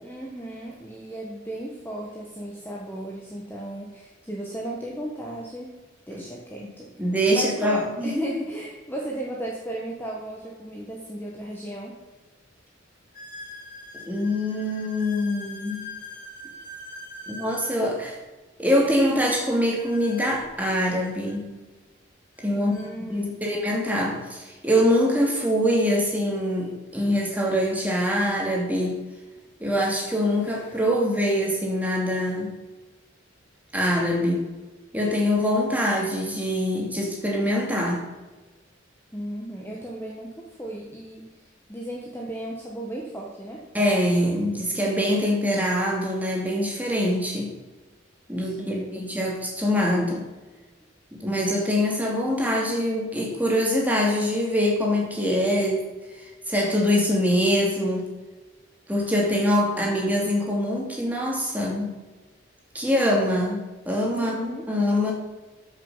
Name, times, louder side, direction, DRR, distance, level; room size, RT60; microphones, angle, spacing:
voice 1, 0.0-5.8 6.1-6.9 7.3-12.0 22.6-23.4 39.1-41.3 41.7-43.6 48.4-49.1 64.1-64.7, right 1 dB, 10° left, -3 dB, 1.4 m, -35 dB
voice 2, 7.0-8.3 14.1-15.8 17.3-18.2 18.6-21.4 22.4-22.7 23.0-29.0 29.6-32.5 33.7-34.5 34.9-38.1 43.7-47.5 48.3-50.2 51.2-55.8 56.1-58.1 58.9-62.0 62.7-65.1, equal, 10° right, -2 dB, 2.6 m, -24 dB
sound 1, 11.4-11.5 12.2-12.3 13.1-17.8 19.7-21.4 22.4-22.5 22.7-22.9 23.7-23.8 26.0-26.1 28.2-28.3 29.0-29.3 29.9-30.8, left 2 dB, 45° left, 2.8 m, -43 dB
13.5 x 6.5 x 5.7 m, 1.2 s
head